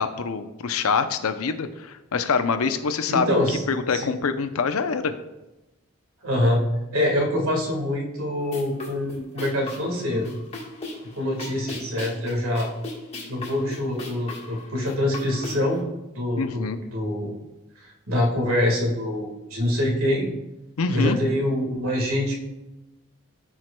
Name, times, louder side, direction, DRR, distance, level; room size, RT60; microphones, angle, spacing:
voice 1, 0.0-3.3 3.7-5.1 16.4-16.8 20.8-21.2, left 5 dB, 85° left, 9 dB, 0.6 m, -25 dB
voice 2, 3.1-3.6 3.9-4.1 6.2-6.6 6.9-10.3 11.2-12.7 13.3-15.8 16.1-16.6 16.9-17.3 18.1-20.3 20.9-22.3, left 1 dB, 80° right, 1 dB, 1.6 m, -25 dB
sound 1, 8.4-15.8, left 2 dB, 30° left, 1.3 m, -38 dB
13.5 x 4.6 x 2.2 m, 1.0 s
head